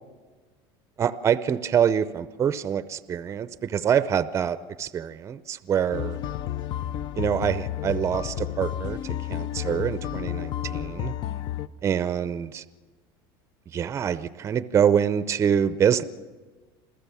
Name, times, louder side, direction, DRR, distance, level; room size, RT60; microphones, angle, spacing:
voice 1, 1.0-6.2 7.1-11.1 11.8-12.6 13.7-16.0, right 8 dB, 25° right, 15 dB, 0.6 m, -25 dB
sound 1, 5.9-11.7, left 12 dB, 40° left, 0.5 m, -31 dB
27.5 x 15.0 x 7.0 m, 1.4 s
supercardioid pair, 145°, 12 cm